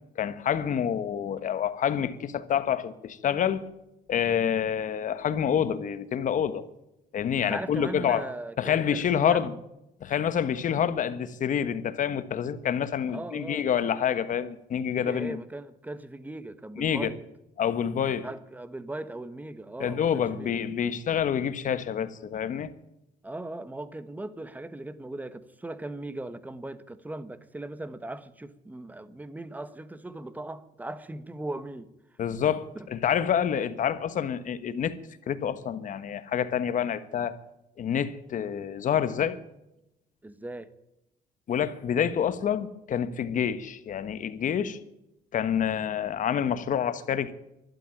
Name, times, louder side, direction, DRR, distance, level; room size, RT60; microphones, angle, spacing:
voice 1, 0.2-3.6 4.1-6.6 7.1-8.3 8.6-9.5 10.0-15.4 16.8-17.1 17.6-18.3 19.8-22.7 32.2-35.0 35.3-37.4 37.8-39.4 41.5-44.8 45.3-47.3, left 8 dB, 50° left, 1.3 m, -27 dB
voice 2, 7.4-9.5 13.1-13.7 15.0-17.2 18.2-20.6 23.2-31.9 32.7-32.9 40.2-40.7, right 2 dB, 10° right, 1.2 m, -39 dB
12.0 x 12.0 x 9.1 m
cardioid pair, 110°, 17 cm